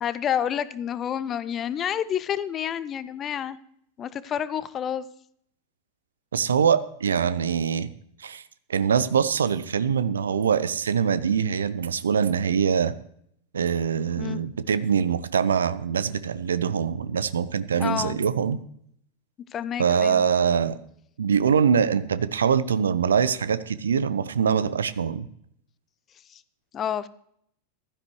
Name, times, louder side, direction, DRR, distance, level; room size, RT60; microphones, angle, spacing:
voice 1, 0.0-3.6 4.0-5.1 14.2-14.4 17.8-18.2 19.5-20.2 26.3-26.4 26.7-27.1, left 9 dB, 25° left, 16 dB, 0.6 m, -29 dB
voice 2, 6.3-7.9 8.2-8.4 8.7-12.9 13.5-18.6 19.8-20.7 21.2-25.3, right 7 dB, 70° right, 16 dB, 0.7 m, -23 dB
15.5 x 12.5 x 3.1 m, 0.69 s
figure-of-eight pair, 90°, 0 cm